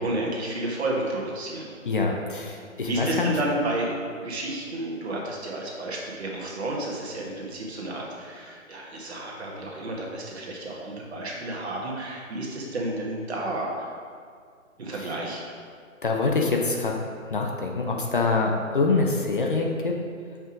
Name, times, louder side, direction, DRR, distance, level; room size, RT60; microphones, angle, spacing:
voice 1, 0.0-1.7 2.9-13.9 14.8-15.4, right 1 dB, 50° right, -2 dB, 1.7 m, -31 dB
voice 2, 1.8-3.4 14.9-15.2 16.0-20.0, left 3 dB, 40° left, 1 dB, 0.7 m, -25 dB
6.0 x 5.3 x 4.9 m, 2.1 s
figure-of-eight pair, 150°, 41 cm